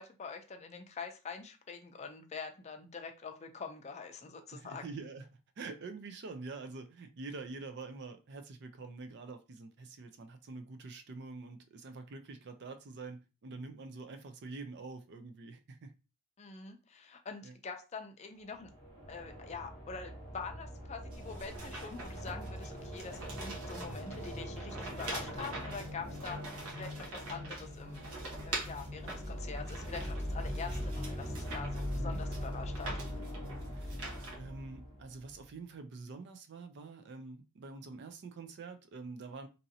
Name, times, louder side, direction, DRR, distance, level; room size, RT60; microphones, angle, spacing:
voice 1, 0.0-4.8 16.4-18.7 19.1-28.1 28.5-33.0, left 5 dB, 30° left, 0.4 m, -45 dB
voice 2, 4.5-15.9 17.4-17.6 31.9-32.2 33.7-34.0 34.3-39.5, right 3 dB, 50° right, 0.4 m, -46 dB
sound 1, 18.4-35.5, equal, 70° right, 1.3 m, -41 dB
sound 2, 21.1-34.4, right 2 dB, 85° right, 1.0 m, -45 dB
2.9 x 2.6 x 2.7 m
head